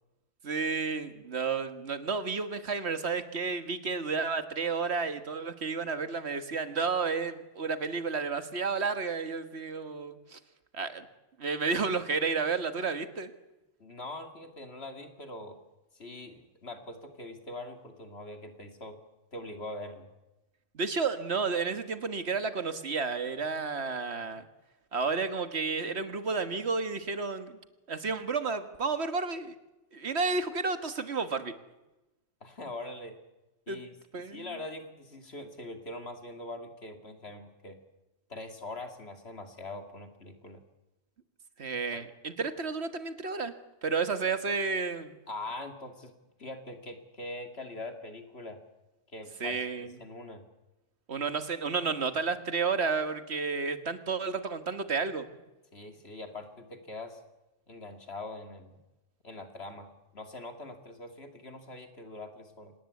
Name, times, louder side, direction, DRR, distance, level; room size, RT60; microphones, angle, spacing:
voice 1, 0.4-10.4 10.7-11.1 11.4-13.3 20.8-24.5 24.9-27.6 27.9-29.5 29.9-31.5 33.7-33.9 34.1-34.5 41.6-43.5 43.8-45.2 49.4-49.9 51.1-55.3, right 4 dB, 60° right, 10 dB, 1.8 m, -31 dB
voice 2, 13.8-15.6 15.9-19.0 19.3-20.1 32.4-33.2 33.7-33.9 34.2-37.8 38.3-40.6 41.9-42.0 45.3-46.1 46.4-48.6 49.1-49.6 50.0-50.4 55.7-57.2 57.7-58.8 59.2-62.7, left 2 dB, 60° left, 6 dB, 2.9 m, -42 dB
26.0 x 18.5 x 8.4 m, 1.0 s
omnidirectional pair, 1.2 m